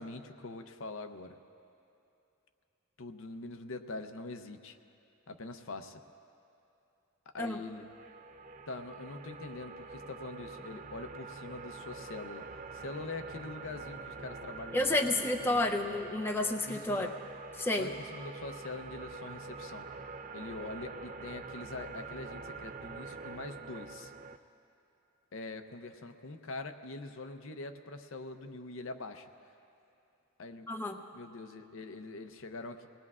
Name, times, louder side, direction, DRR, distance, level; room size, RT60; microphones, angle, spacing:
voice 1, 0.0-1.3 3.0-4.8 5.3-6.0 7.3-7.8 8.7-12.5 12.7-15.9 16.6-17.1 17.7-19.9 20.3-24.1 25.3-29.3 30.4-30.7 31.1-32.9, left 3 dB, 65° left, 7 dB, 0.7 m, -44 dB
sound 1, 7.6-24.4, right 4 dB, 35° right, 0.4 m, -45 dB
voice 2, 14.7-17.1 17.6-17.9 30.7-31.0, left 2 dB, 10° left, 1 dB, 0.6 m, -30 dB
25.0 x 19.5 x 2.4 m, 2.8 s
head